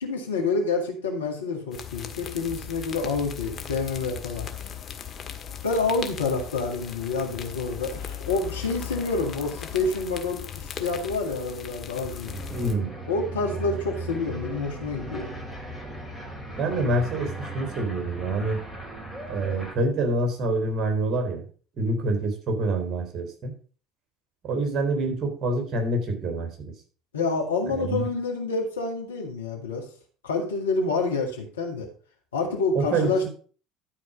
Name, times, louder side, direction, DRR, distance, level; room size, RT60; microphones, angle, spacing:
voice 1, 0.0-4.5 5.6-12.4 13.1-15.3 27.1-29.8 30.2-31.9 32.3-33.3, left 3 dB, 85° left, 1 dB, 2.1 m, -28 dB
sound 1, 1.7-12.8, left 8 dB, 40° left, 1.6 m, -38 dB
sound 2, 12.2-19.7, right 2 dB, 5° right, 4.3 m, -37 dB
voice 2, 12.5-12.9 16.6-18.6 19.3-21.4 21.8-23.5 24.4-26.5 27.7-28.1 32.7-33.3, right 2 dB, 45° right, 4 dB, 3.7 m, -26 dB
12.5 x 5.0 x 5.4 m, 0.41 s
hypercardioid pair, 65°, 0 cm